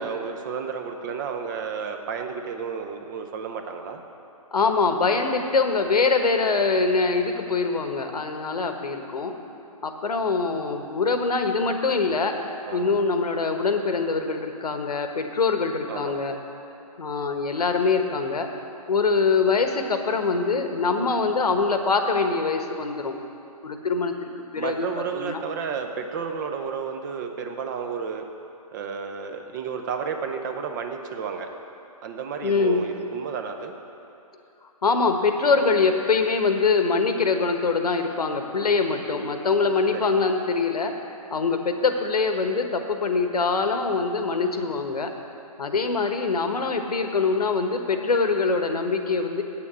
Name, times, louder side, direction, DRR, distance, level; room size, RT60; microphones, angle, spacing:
voice 1, 0.0-4.0 12.7-12.9 15.9-16.2 24.5-28.2 28.7-31.5 32.0-33.7 39.9-40.2, right 6 dB, 30° right, 5 dB, 0.8 m, -32 dB
voice 2, 4.5-9.3 9.8-12.3 12.7-16.4 17.0-18.5 18.9-23.1 23.6-24.9 25.1-25.4 32.4-32.8 34.8-40.9 41.3-45.1 45.6-49.4, left 4 dB, 85° left, 6 dB, 1.2 m, -23 dB
8.7 x 7.1 x 8.2 m, 2.8 s
hypercardioid pair, 150°, 19 cm